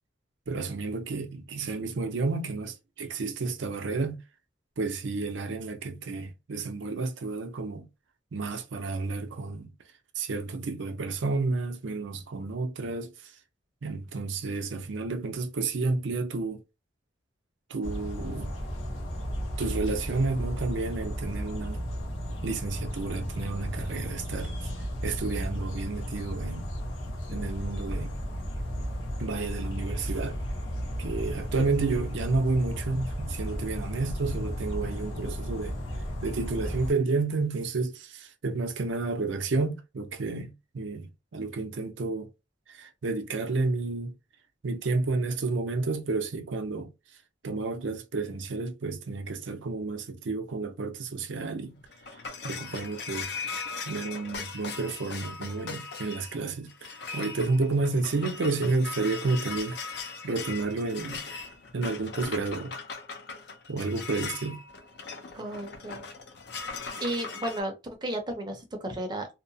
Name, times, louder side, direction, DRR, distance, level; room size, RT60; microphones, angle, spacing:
voice 1, 0.5-4.2 4.8-7.9 8.3-9.7 10.2-13.3 13.8-16.6 17.7-18.5 19.6-21.8 22.4-24.6 25.0-26.7 27.3-28.2 29.2-30.4 31.0-35.8 36.2-42.3 42.7-44.1 44.6-46.9 47.4-51.8 52.4-53.3 53.9-61.2 61.7-62.7 63.7-64.6, right 3 dB, 75° right, 0.5 m, -31 dB
sound 1, 17.8-36.9, equal, 90° left, 0.8 m, -34 dB
sound 2, 51.6-67.6, left 5 dB, 60° left, 0.5 m, -39 dB
voice 2, 65.3-66.1 67.0-67.7 68.0-69.3, right 1 dB, 20° right, 0.6 m, -33 dB
2.8 x 2.1 x 2.6 m
head